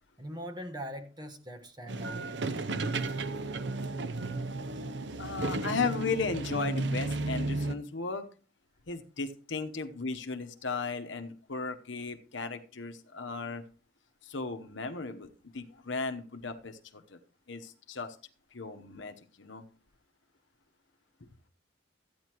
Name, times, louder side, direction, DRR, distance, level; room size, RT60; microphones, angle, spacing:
voice 1, 0.2-2.3, equal, 20° right, 1.2 m, -41 dB
sound 1, 1.9-7.8, right 2 dB, 60° right, 0.7 m, -33 dB
voice 2, 5.2-8.2 8.9-13.6 14.2-17.2 17.5-18.2 18.5-19.6, left 4 dB, 70° left, 1.0 m, -36 dB
14.0 x 9.5 x 3.0 m
head